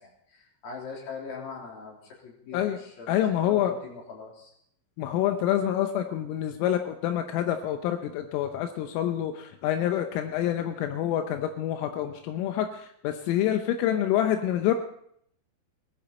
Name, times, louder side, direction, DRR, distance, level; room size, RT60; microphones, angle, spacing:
voice 1, 0.0-4.5, left 5 dB, 50° left, -2 dB, 4.9 m, -42 dB
voice 2, 3.1-3.7 5.0-12.7 13.1-14.7, left 11 dB, 85° left, 6 dB, 3.5 m, -27 dB
19.0 x 14.0 x 4.2 m, 0.69 s
omnidirectional pair, 5.8 m